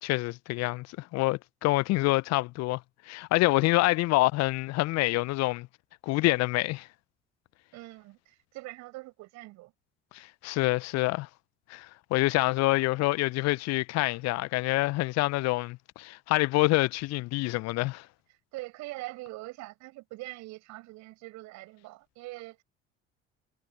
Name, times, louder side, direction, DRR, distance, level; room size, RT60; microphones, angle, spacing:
voice 1, 0.0-2.8 3.1-5.7 6.0-6.9 10.1-11.3 11.7-18.0, left 20 dB, 50° left, 1.3 m, -26 dB
voice 2, 7.7-9.7 18.5-22.6, right 20 dB, 55° right, 6.9 m, -43 dB
figure-of-eight pair, 60°, 34 cm